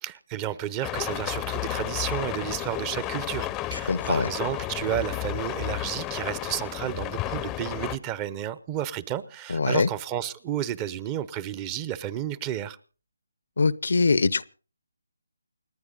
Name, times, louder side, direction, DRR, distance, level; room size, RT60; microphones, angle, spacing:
voice 1, 0.0-12.8, right 11 dB, 20° right, 18 dB, 0.7 m, -32 dB
sound 1, 0.8-8.0, left 15 dB, 15° left, 0.7 m, -32 dB
voice 2, 3.7-4.3 9.5-9.9 13.6-14.4, left 4 dB, 65° left, 20 dB, 0.7 m, -23 dB
29.0 x 9.7 x 3.9 m, 0.37 s
figure-of-eight pair, 155°, 0 cm